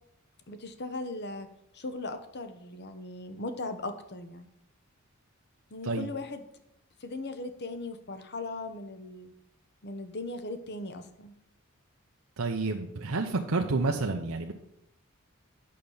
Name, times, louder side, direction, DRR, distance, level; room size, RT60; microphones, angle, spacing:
voice 1, 0.5-1.5 1.7-4.5 5.7-6.4 7.0-9.3 9.8-11.3, left 2 dB, 50° left, 8 dB, 1.0 m, -38 dB
voice 2, 12.4-14.5, right 3 dB, 75° right, 2 dB, 0.8 m, -29 dB
8.8 x 6.6 x 5.6 m, 0.79 s
head